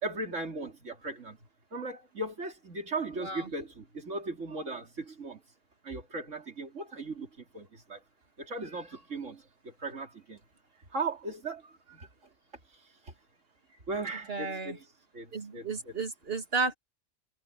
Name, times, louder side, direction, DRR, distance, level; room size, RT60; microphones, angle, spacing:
voice 1, 0.0-1.4 1.7-5.4 5.8-8.0 8.4-10.4 10.9-11.6 11.9-12.1 13.9-14.8 15.1-15.9, right 3 dB, 90° right, 3.3 m, -37 dB
voice 2, 14.3-14.8 15.3-16.7, right 4 dB, 55° right, 2.7 m, -33 dB
omnidirectional pair, 1.2 m